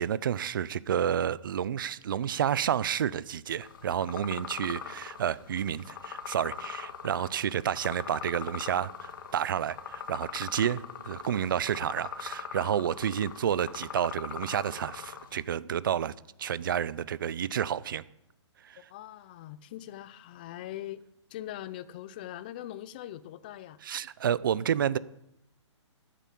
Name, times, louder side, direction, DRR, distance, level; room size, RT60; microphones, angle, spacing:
voice 1, 0.0-16.1 16.4-18.0 18.7-18.8 23.8-25.0, right 9 dB, 45° right, 19 dB, 0.6 m, -30 dB
sound 1, 3.6-15.4, left 7 dB, 45° left, 1.5 m, -41 dB
voice 2, 18.9-21.0 21.3-23.8, left 13 dB, 20° left, 15 dB, 0.4 m, -41 dB
13.0 x 9.2 x 7.6 m, 0.83 s
hypercardioid pair, 170°, 16 cm